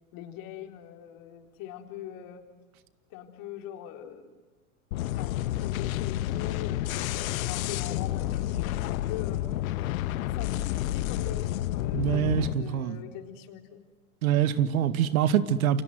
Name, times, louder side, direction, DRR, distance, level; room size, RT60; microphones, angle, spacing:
voice 1, 0.1-2.4 3.1-4.3 5.2-9.5 9.8-10.0 10.3-13.8, left 10 dB, 45° left, 6 dB, 4.0 m, -42 dB
sound 1, 4.9-12.5, left 14 dB, 65° left, 1.4 m, -30 dB
voice 2, 11.9-13.0 14.2-15.8, right 10 dB, 70° right, 13 dB, 2.0 m, -25 dB
28.5 x 25.5 x 7.8 m, 1.3 s
hypercardioid pair, 105°, 45 cm